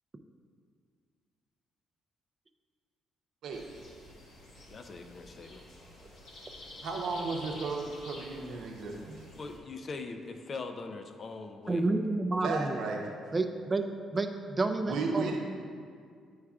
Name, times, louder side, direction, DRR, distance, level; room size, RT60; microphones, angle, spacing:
sound 1, 3.5-9.6, left 1 dB, 85° left, 1.3 m, -49 dB
voice 1, 4.7-5.6 9.4-11.9, left 3 dB, 45° left, 6 dB, 0.5 m, -41 dB
voice 2, 6.8-9.2 12.4-13.0 14.9-15.4, right 3 dB, 75° right, 0 dB, 0.7 m, -34 dB
voice 3, 11.7-12.8 13.3-13.8 14.1-15.4, right 3 dB, 25° right, 6 dB, 0.4 m, -30 dB
8.6 x 4.7 x 2.4 m, 2.2 s
cardioid pair, 90°, 0 cm